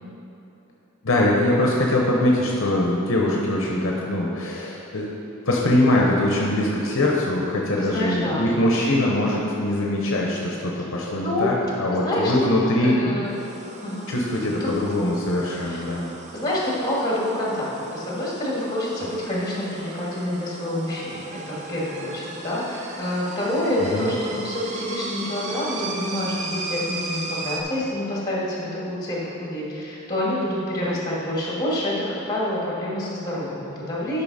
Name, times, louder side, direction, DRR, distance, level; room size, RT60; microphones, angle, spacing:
voice 1, 1.0-5.1 5.5-13.0 14.1-16.1 23.9-24.1, left 1 dB, 60° left, -2 dB, 0.9 m, -22 dB
voice 2, 7.8-8.5 11.2-11.5 11.9-12.5 12.8-13.3 13.8-14.1 14.6-14.7 15.6-15.8 16.3-34.2, left 1 dB, 20° left, -6 dB, 2.0 m, -27 dB
sound 1, 13.2-27.6, right 3 dB, 30° right, 0.7 m, -36 dB
10.5 x 5.7 x 4.1 m, 2.8 s
head